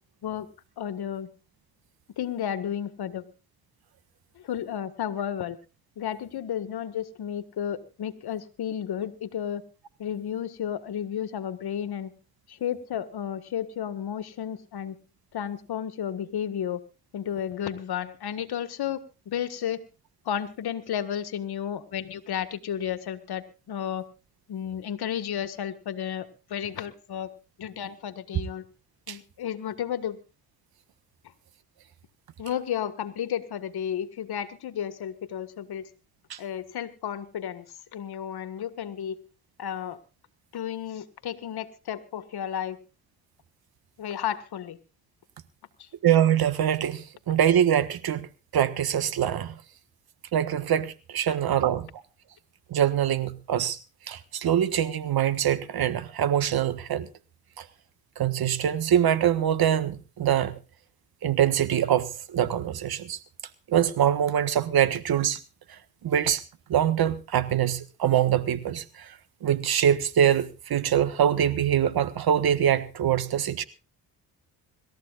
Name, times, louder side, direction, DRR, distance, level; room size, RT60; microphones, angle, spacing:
voice 1, 0.8-1.3 2.2-3.2 4.4-5.6 6.0-9.6 10.0-12.1 12.5-15.0 15.3-16.8 17.1-19.8 20.3-24.0 24.5-27.3 27.6-28.6 29.1-30.2 32.4-35.8 36.4-37.7 37.9-39.2 39.6-40.0 40.5-42.8 44.0-44.8 45.8-45.9, left 9 dB, 65° left, 1.7 m, -32 dB
voice 2, 46.0-48.3 48.5-49.5 50.3-51.9 52.7-53.8 54.1-57.1 57.6-57.7 58.2-60.6 61.2-63.2 63.7-65.4 66.0-66.4 66.7-69.1 69.4-73.6, right 10 dB, 60° right, 1.5 m, -24 dB
26.0 x 13.5 x 2.5 m
supercardioid pair, 55°, 41 cm